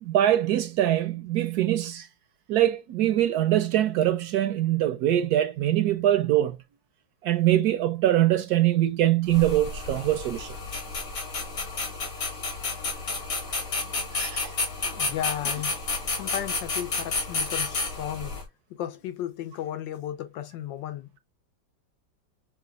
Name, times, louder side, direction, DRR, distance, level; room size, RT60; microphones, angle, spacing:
voice 1, 0.0-2.1 2.5-6.6 7.2-10.6 14.1-14.5, right 13 dB, 70° right, 1.0 m, -23 dB
sound 1, 9.3-18.4, left 3 dB, 50° left, 1.8 m, -31 dB
voice 2, 14.8-15.8 16.1-18.4 18.7-21.2, left 11 dB, 85° left, 1.4 m, -34 dB
6.0 x 2.3 x 2.4 m
omnidirectional pair, 2.0 m